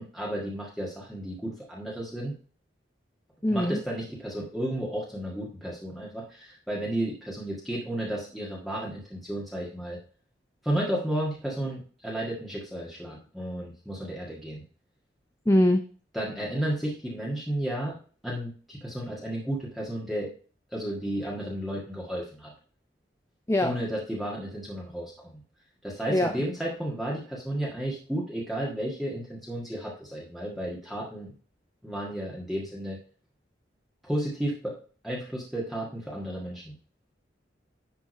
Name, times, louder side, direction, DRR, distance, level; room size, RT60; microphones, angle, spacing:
voice 1, 0.0-2.4 3.5-10.0 10.6-14.6 16.1-18.0 18.2-20.3 20.7-22.5 23.6-25.4 25.8-31.3 31.8-33.0 34.0-34.8 35.0-36.7, right 1 dB, ahead, -5 dB, 1.7 m, -33 dB
voice 2, 3.4-3.8 15.5-15.8 23.5-23.8 26.1-26.4, left 1 dB, 15° left, 5 dB, 0.6 m, -22 dB
10.5 x 3.6 x 5.1 m, 0.41 s
head